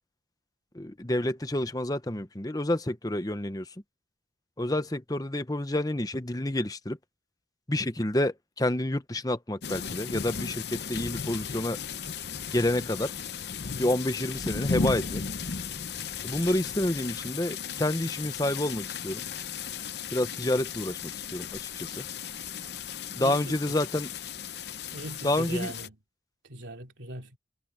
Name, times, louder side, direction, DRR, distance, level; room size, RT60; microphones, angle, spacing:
voice 1, 0.7-3.6 4.6-7.0 7.7-11.8 12.5-13.1 13.8-15.2 16.2-19.2 20.1-22.0 23.1-24.1 25.2-25.7, left 1 dB, 20° left, 0.9 m, -29 dB
sound 1, 9.6-25.9, left 6 dB, 60° left, 0.8 m, -36 dB
voice 2, 23.2-23.8 24.9-26.0 26.4-27.4, right 1 dB, 80° right, 3.1 m, -40 dB
head